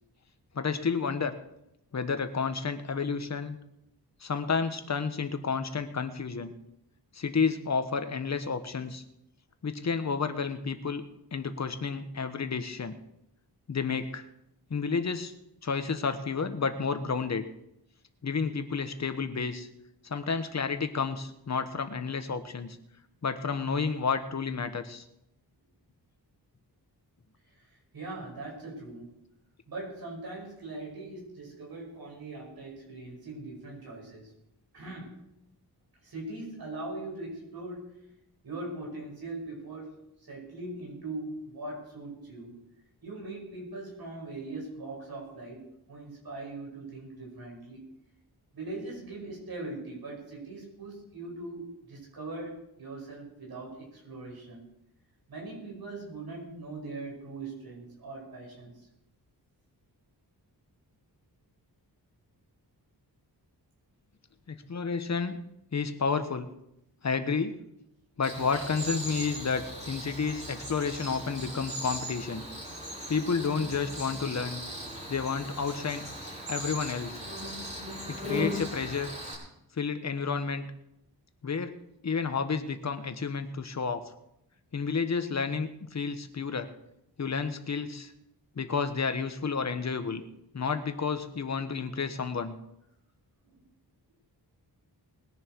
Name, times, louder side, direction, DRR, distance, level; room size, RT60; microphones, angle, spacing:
voice 1, 0.5-1.3 1.9-3.6 4.2-6.5 7.1-9.0 9.6-11.0 11.3-13.0 13.7-14.2 14.7-15.3 15.6-17.4 18.2-19.7 20.0-22.8 23.2-25.0 64.5-65.4 65.7-66.5 67.0-67.6 68.2-72.4 73.1-74.6 75.1-76.0 76.5-77.2 78.1-79.1 79.7-80.7 81.4-81.7 82.0-84.1 84.7-86.7 87.2-88.1 88.6-90.2 90.5-92.6, left 5 dB, 45° left, 9 dB, 1.2 m, -31 dB
voice 2, 27.6-29.1 29.7-34.3 34.7-35.2 36.0-38.1 38.4-42.5 43.0-47.9 48.5-54.6 55.3-58.9 93.4-93.6, right 2 dB, 65° right, -2 dB, 5.8 m, -41 dB
Cricket, 68.2-79.3, equal, 15° right, 5.3 m, -38 dB
20.5 x 10.5 x 4.6 m, 0.81 s
wide cardioid pair, 175°, 40 cm